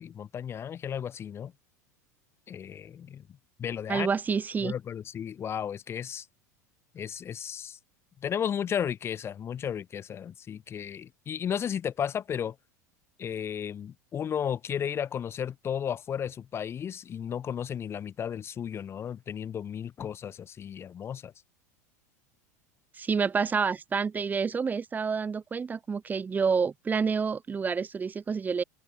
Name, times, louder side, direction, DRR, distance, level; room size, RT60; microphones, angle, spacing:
voice 1, 0.0-1.5 2.5-3.2 3.6-4.1 4.6-6.3 6.9-7.8 8.2-12.6 13.2-21.3, left 8 dB, 25° left, 0.5 m, -34 dB
voice 2, 3.9-4.7 23.0-28.6, right 5 dB, 20° right, 0.6 m, -28 dB
figure-of-eight pair, 80°, 9 cm